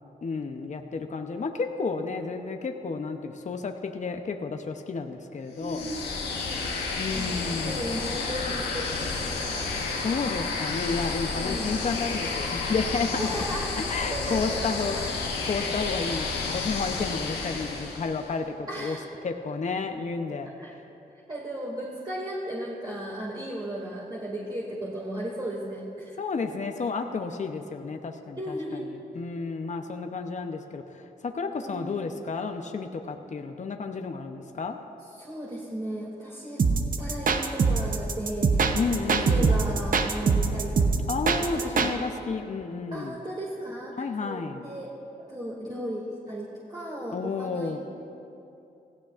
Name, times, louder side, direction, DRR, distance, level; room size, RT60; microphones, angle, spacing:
voice 1, 0.2-5.9 6.9-7.8 10.0-13.3 13.8-15.0 15.4-19.0 19.2-20.8 26.2-28.6 29.1-34.8 38.7-39.6 41.1-43.2 44.0-44.7 47.1-47.8, left 4 dB, 45° left, 5 dB, 0.8 m, -31 dB
sound 1, 5.6-18.3, left 4 dB, 90° left, 1.4 m, -31 dB
voice 2, 5.6-6.8 7.1-9.7 11.2-11.7 13.2-15.1 15.6-15.7 18.7-19.1 20.6-20.7 21.1-26.2 28.4-28.8 31.6-32.0 35.2-40.9 41.5-41.9 42.9-44.9 45.3-47.8, right 1 dB, 25° right, -5 dB, 2.4 m, -36 dB
sound 2, 36.6-41.9, right 4 dB, 55° right, 0.8 m, -23 dB
16.5 x 15.0 x 2.5 m, 2.8 s
cardioid pair, 50°, 16 cm